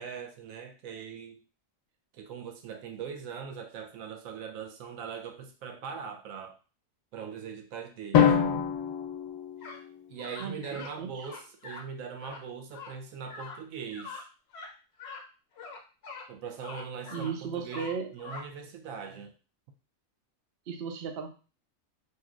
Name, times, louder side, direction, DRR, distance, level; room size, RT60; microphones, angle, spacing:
voice 1, 0.0-1.4 2.1-6.6 7.1-8.4 10.1-14.3 16.3-19.4, right 6 dB, 90° right, 4 dB, 1.0 m, -41 dB
Drum, 8.1-10.2, left 7 dB, 85° left, 1.0 m, -25 dB
sound 1, 9.6-9.8 10.2-10.9 11.2-11.8 12.2-12.4 12.7-12.9 13.3-13.6 13.9-14.2 14.5-14.7 15.0-15.2 15.6-16.3 16.6-17.3 17.7-18.4, left 4 dB, 60° left, 0.8 m, -43 dB
voice 2, 10.4-11.3 17.1-18.1 20.7-21.3, right 6 dB, 60° right, 5 dB, 0.6 m, -35 dB
3.1 x 2.6 x 2.3 m, 0.35 s
omnidirectional pair, 1.4 m